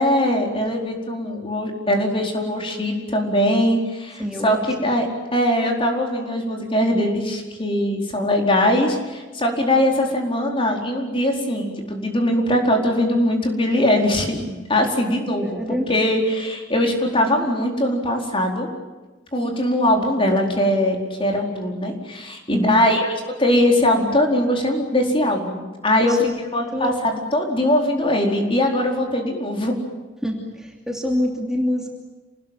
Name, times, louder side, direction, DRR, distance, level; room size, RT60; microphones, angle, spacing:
voice 1, 0.0-15.6 15.9-18.7 19.3-23.1 23.4-26.1 26.5-29.7, left 1 dB, 30° left, 2 dB, 4.5 m, -21 dB
voice 2, 4.2-4.7 15.4-15.9 22.5-22.8 26.0-26.4 26.7-27.0 30.2-31.9, left 1 dB, 5° right, -1 dB, 2.9 m, -26 dB
28.0 x 19.5 x 9.2 m, 1.2 s
head